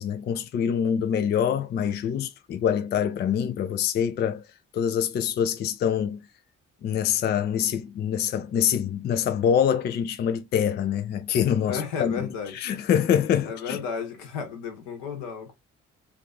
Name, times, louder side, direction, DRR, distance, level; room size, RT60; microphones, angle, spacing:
voice 1, 0.0-4.4 4.7-6.2 6.8-12.1 12.5-13.8, left 8 dB, 30° left, 0.3 m, -25 dB
voice 2, 11.6-12.5 13.4-15.5, left 6 dB, 70° left, 1.1 m, -33 dB
3.2 x 2.5 x 2.4 m
figure-of-eight pair, 45°, 37 cm